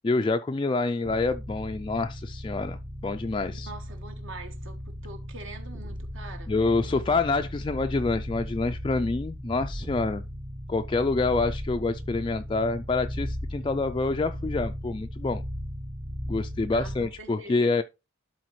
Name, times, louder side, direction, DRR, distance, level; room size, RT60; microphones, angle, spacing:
voice 1, 0.0-2.8 3.0-3.7 6.5-10.2 10.7-15.4 16.3-17.8, left 3 dB, 25° left, 0.3 m, -27 dB
sound 1, 1.0-17.2, equal, 20° right, 0.6 m, -37 dB
voice 2, 3.5-7.2 16.7-17.7, right 3 dB, 65° right, 1.2 m, -45 dB
12.0 x 4.1 x 3.1 m
head